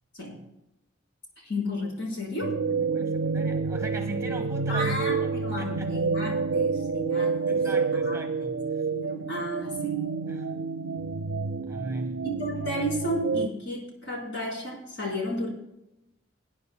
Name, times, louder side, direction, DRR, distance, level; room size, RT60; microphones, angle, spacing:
voice 1, 1.4-2.6 4.7-7.6 8.0-8.1 8.9-10.0 12.2-15.5, left 1 dB, 65° left, -3 dB, 3.9 m, -33 dB
sound 1, 2.4-13.5, right 4 dB, 90° right, 0.4 m, -28 dB
voice 2, 2.7-5.3 5.6-6.0 7.5-8.9 10.3-10.5 11.7-12.3, right 2 dB, 15° right, 6 dB, 1.0 m, -39 dB
22.0 x 9.6 x 2.2 m, 0.90 s
head